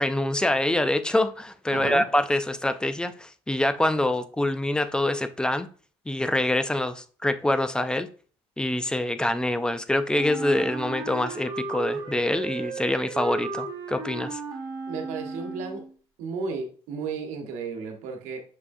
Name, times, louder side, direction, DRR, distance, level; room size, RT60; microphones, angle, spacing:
voice 1, 0.0-5.7 6.1-8.1 8.6-14.4, left 1 dB, 5° left, 0.3 m, -25 dB
voice 2, 1.7-2.0 14.9-15.8 16.2-18.4, right 4 dB, 90° right, 1.0 m, -33 dB
Wind instrument woodwind instrument, 10.1-15.9, right 4 dB, 40° right, 1.6 m, -34 dB
6.1 x 3.2 x 2.5 m
cardioid pair, 120°, 12 cm